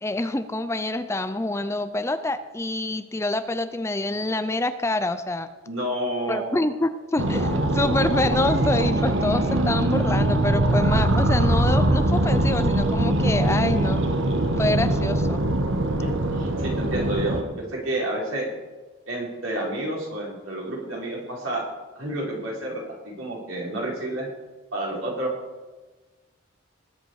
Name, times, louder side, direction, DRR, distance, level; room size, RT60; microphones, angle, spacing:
voice 1, 0.0-5.5 6.3-14.0 14.6-15.4, left 2 dB, 15° left, 11 dB, 0.5 m, -26 dB
voice 2, 5.6-6.6 16.0-18.5 19.1-21.6 21.9-24.3 24.7-25.3, right 1 dB, 85° right, -3 dB, 4.8 m, -30 dB
sound 1, 7.2-17.4, right 1 dB, 65° right, 1.3 m, -22 dB
20.0 x 7.8 x 4.9 m, 1.2 s
head